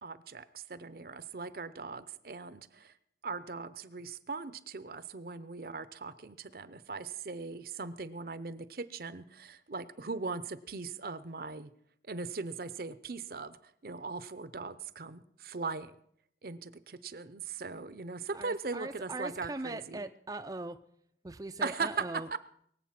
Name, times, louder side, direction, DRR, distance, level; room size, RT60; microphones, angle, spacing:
voice 1, 0.0-3.0 3.2-11.7 12.0-15.9 16.4-20.0 21.6-22.0 22.3-22.4, right 4 dB, 55° right, 14 dB, 0.7 m, -39 dB
voice 2, 18.3-20.8 21.2-22.3, right 2 dB, 20° right, 7 dB, 0.5 m, -40 dB
22.5 x 8.1 x 5.9 m, 0.69 s
head